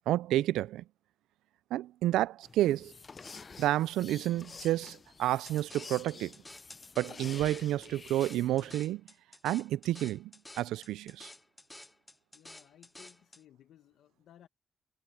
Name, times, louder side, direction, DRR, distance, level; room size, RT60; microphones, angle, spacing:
voice 1, 0.1-0.8 1.7-2.9 3.6-6.3 7.0-9.0 9.4-10.3 10.6-11.3, right 14 dB, 85° right, 0.3 m, -30 dB
sound 1, 2.4-8.8, left 4 dB, 40° left, 0.6 m, -49 dB
sound 2, 5.5-13.4, left 2 dB, 15° left, 0.8 m, -52 dB
voice 2, 12.3-14.5, left 11 dB, 75° left, 1.3 m, -59 dB
supercardioid pair, 55°, 0 cm